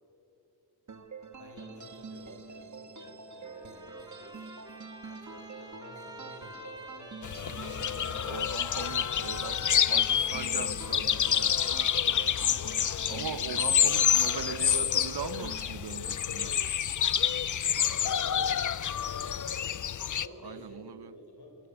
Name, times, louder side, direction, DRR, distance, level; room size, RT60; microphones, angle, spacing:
sound 1, 0.9-15.7, right 4 dB, 40° right, 1.4 m, -46 dB
voice 1, 1.4-4.5 5.1-8.2 17.6-19.5 20.1-21.7, left 1 dB, 65° left, 5.7 m, -52 dB
Trumpet, 3.4-13.1, right 1 dB, 10° right, 2.7 m, -49 dB
sound 2, 7.2-20.3, left 9 dB, 45° left, 0.5 m, -28 dB
voice 2, 8.3-11.6 13.1-16.6 20.4-21.1, right 8 dB, 65° right, 0.8 m, -40 dB
25.5 x 23.0 x 7.8 m
wide cardioid pair, 135°, 43 cm